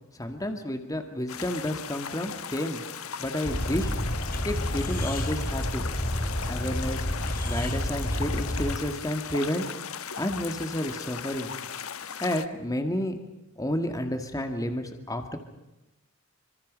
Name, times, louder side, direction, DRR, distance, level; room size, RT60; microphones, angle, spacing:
voice 1, 0.2-2.8 3.2-3.9 4.4-5.8 6.5-7.0 7.5-9.6 10.2-11.5 12.2-13.2 13.6-15.4, left 1 dB, 15° left, 6 dB, 2.2 m, -30 dB
sound 1, 1.3-12.5, left 7 dB, 75° left, 1.3 m, -38 dB
sound 2, 3.4-8.8, left 1 dB, 40° left, 3.5 m, -30 dB
30.0 x 26.0 x 5.5 m, 0.95 s
head